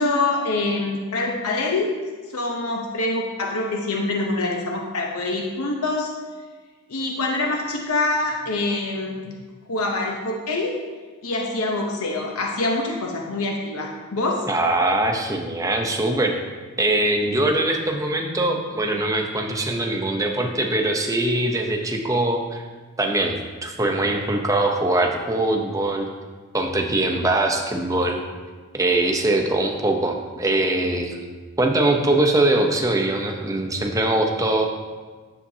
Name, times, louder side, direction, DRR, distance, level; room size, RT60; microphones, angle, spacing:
voice 1, 0.0-1.9 2.3-6.1 6.9-9.3 9.7-10.8 11.2-14.5, left 2 dB, 85° left, 0 dB, 0.8 m, -25 dB
voice 2, 14.5-16.3 16.8-22.6 23.0-26.1 26.5-28.2 28.7-31.3 31.6-34.6, right 2 dB, 15° right, 2 dB, 0.7 m, -22 dB
10.0 x 7.2 x 2.8 m, 1.4 s
head